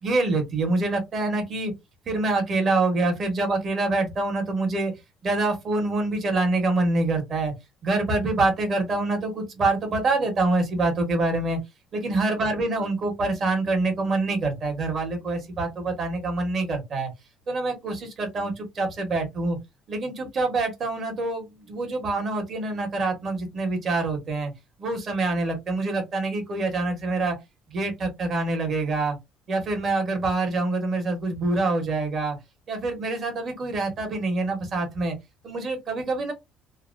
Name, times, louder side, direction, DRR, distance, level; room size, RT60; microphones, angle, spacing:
voice 1, 0.0-1.7 2.1-4.9 5.2-7.5 7.8-11.6 11.9-17.1 17.5-19.6 19.9-24.5 24.8-27.4 27.7-29.2 29.5-32.4 32.7-35.2 35.4-36.3, right 2 dB, 40° right, 1.2 m, -25 dB
2.8 x 2.2 x 2.5 m
cardioid pair, 140°, 0 cm